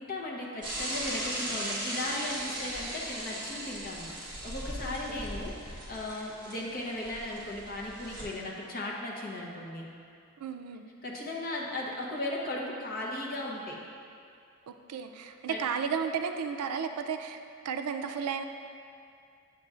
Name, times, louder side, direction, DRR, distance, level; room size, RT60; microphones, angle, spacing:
voice 1, 0.0-9.9 11.0-13.8 15.5-15.6, left 1 dB, 40° left, -2 dB, 0.9 m, -37 dB
Bicycle / Mechanisms, 0.6-8.2, right 1 dB, 20° right, 1.4 m, -38 dB
voice 2, 4.9-5.2 10.4-10.8 14.7-17.4 17.6-18.4, right 6 dB, 80° right, 7 dB, 0.4 m, -33 dB
8.3 x 6.6 x 2.5 m, 2.4 s
head